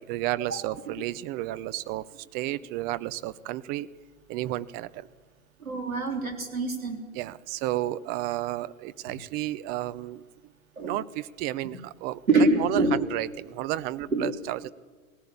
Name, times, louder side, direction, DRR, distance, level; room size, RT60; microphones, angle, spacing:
voice 1, 0.0-2.1 2.3-3.9 4.3-5.1 7.1-10.2 10.8-14.7, right 15 dB, 25° right, 16 dB, 0.6 m, -32 dB
voice 2, 5.6-7.0 10.8-10.9 12.3-12.9 14.1-14.2, right 2 dB, 75° right, 4 dB, 3.7 m, -25 dB
18.5 x 18.0 x 8.6 m, 1.4 s
figure-of-eight pair, 105°, 41 cm